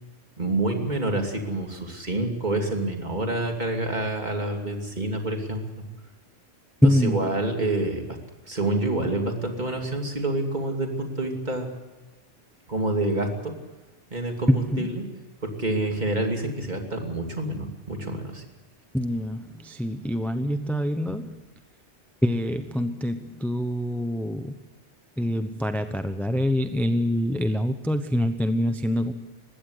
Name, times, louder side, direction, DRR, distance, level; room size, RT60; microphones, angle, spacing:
voice 1, 0.4-5.6 6.8-8.0 8.4-11.7 12.7-13.5 14.1-15.0 15.4-18.4, right 2 dB, 40° right, 3 dB, 2.9 m, -27 dB
voice 2, 6.8-7.3 14.5-14.9 18.9-21.4 22.2-24.6 25.2-29.1, equal, ahead, 8 dB, 0.8 m, -25 dB
20.5 x 16.0 x 8.1 m, 1.2 s
omnidirectional pair, 1.2 m